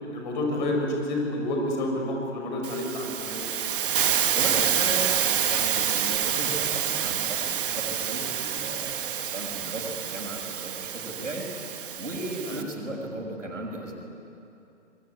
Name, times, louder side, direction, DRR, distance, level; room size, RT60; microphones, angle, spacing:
voice 1, 0.0-3.5 12.5-12.6, left 1 dB, 40° left, 1 dB, 6.3 m, -29 dB
Hiss, 2.6-12.6, right 9 dB, 45° right, 1.6 m, -28 dB
voice 2, 4.3-11.5 12.0-14.0, right 1 dB, 75° right, 1 dB, 6.6 m, -36 dB
25.5 x 22.5 x 10.0 m, 2.6 s
figure-of-eight pair, 125°, 37 cm